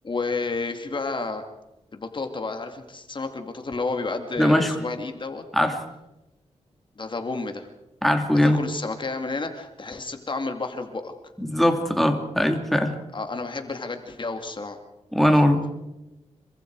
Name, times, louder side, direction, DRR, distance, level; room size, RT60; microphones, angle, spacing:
voice 1, 0.0-1.4 1.9-5.4 7.0-7.7 8.4-11.1 13.1-14.8, left 3 dB, 40° left, 5 dB, 2.5 m, -31 dB
voice 2, 4.4-4.7 5.5-5.8 8.0-8.6 11.4-12.9 15.1-15.7, left 1 dB, ahead, 4 dB, 2.7 m, -20 dB
26.5 x 24.0 x 4.8 m, 0.95 s
cardioid pair, 85°, 12 cm